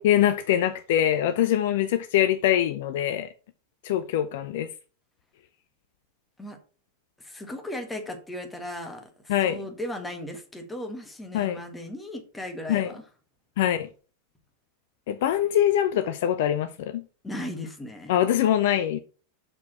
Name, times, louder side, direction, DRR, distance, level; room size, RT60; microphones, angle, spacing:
voice 1, 0.0-3.3 3.8-4.7 9.3-9.6 11.3-11.6 12.7-12.9 13.6-13.9 15.1-17.0 18.1-19.0, left 11 dB, 55° left, 0.5 m, -23 dB
voice 2, 7.2-13.0 17.2-18.2, left 1 dB, 10° left, 1.6 m, -37 dB
6.7 x 4.6 x 6.1 m
figure-of-eight pair, 90°, 0 cm